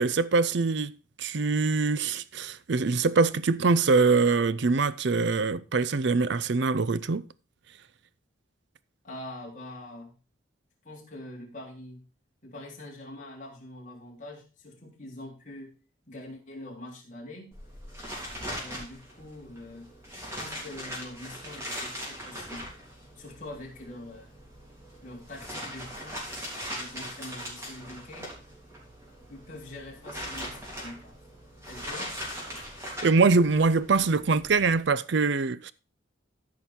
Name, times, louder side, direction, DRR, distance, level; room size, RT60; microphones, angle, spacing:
voice 1, 0.0-7.2 33.0-35.7, right 4 dB, 60° right, 0.5 m, -24 dB
voice 2, 9.0-10.2 10.8-12.0 12.4-15.7 16.1-17.5 18.6-19.9 20.4-22.7 23.2-24.3 25.0-26.2 26.7-28.3 29.3-31.2 31.7-32.1, left 1 dB, 40° left, 3.5 m, -44 dB
sound 1, 17.5-34.8, equal, 15° right, 3.2 m, -40 dB
13.5 x 5.3 x 4.3 m
head